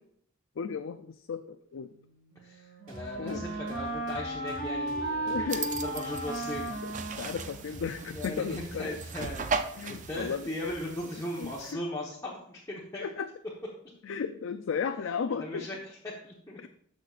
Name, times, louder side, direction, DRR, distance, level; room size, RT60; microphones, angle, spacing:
voice 1, 0.6-1.9 3.2-3.4 5.3-5.7 6.8-9.0 9.8-10.5 11.4-11.8 13.0-13.3 14.0-15.7 16.6-16.7, left 6 dB, 60° left, 8 dB, 0.4 m, -35 dB
Wind instrument woodwind instrument, 2.3-8.1, right 1 dB, 55° right, 2.0 m, -36 dB
voice 2, 2.4-6.8 8.1-9.5 9.9-13.1 13.8-13.9 15.3-16.7, left 1 dB, 15° left, -5 dB, 1.1 m, -38 dB
sound 1, 2.9-9.6, right 1 dB, 80° right, 2.4 m, -47 dB
sound 2, 5.5-11.7, right 5 dB, 35° right, 0.4 m, -38 dB
12.0 x 6.5 x 2.5 m, 0.65 s
head